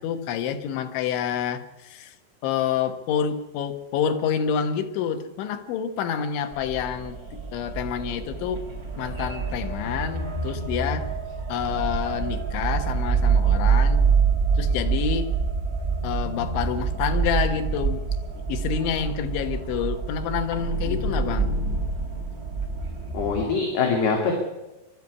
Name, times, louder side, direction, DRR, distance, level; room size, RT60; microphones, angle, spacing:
voice 1, 0.0-2.2 2.4-8.7 9.0-11.1 11.5-14.1 14.6-15.3 16.0-18.0 18.3-21.5, left 8 dB, 90° left, 6 dB, 3.8 m, -28 dB
sound 1, 6.5-23.4, right 5 dB, 20° right, 4.6 m, -26 dB
voice 2, 20.9-21.3 23.1-24.3, left 5 dB, 65° left, 1 dB, 4.3 m, -24 dB
24.0 x 12.5 x 9.8 m, 1.0 s
omnidirectional pair, 5.1 m